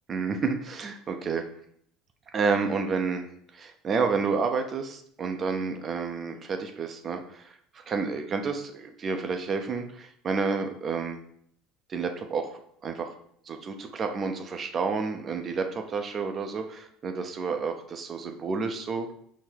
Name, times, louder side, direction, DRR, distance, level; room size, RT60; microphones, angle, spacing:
voice 1, 0.1-1.4 2.3-3.3 3.5-7.5 7.9-11.2 11.9-13.1 13.5-19.1, right 5 dB, 35° right, 5 dB, 0.5 m, -30 dB
3.9 x 2.1 x 4.4 m, 0.64 s
hypercardioid pair, 80°, 0 cm